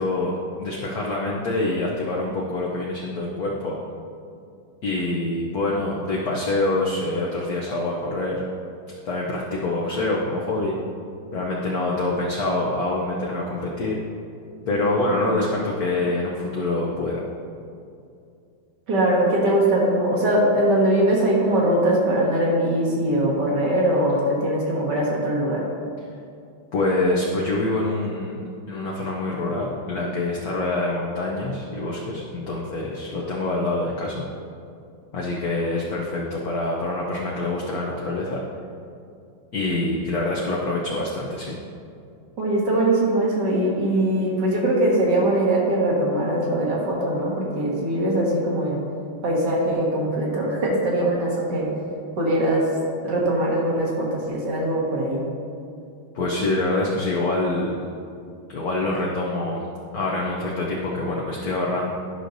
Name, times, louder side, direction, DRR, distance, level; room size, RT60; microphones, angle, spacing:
voice 1, 0.0-3.8 4.8-8.4 9.1-10.7 11.3-14.0 14.7-17.2 26.7-34.2 35.1-38.4 39.5-41.6 56.1-57.8 58.5-59.6 59.9-61.9, left 2 dB, 60° left, -4 dB, 1.1 m, -25 dB
voice 2, 18.9-25.6 42.4-48.8 49.2-51.7 52.2-52.7 53.0-55.2, right 1 dB, 55° right, -4 dB, 2.1 m, -21 dB
12.0 x 6.3 x 2.7 m, 2.5 s
omnidirectional pair, 2.2 m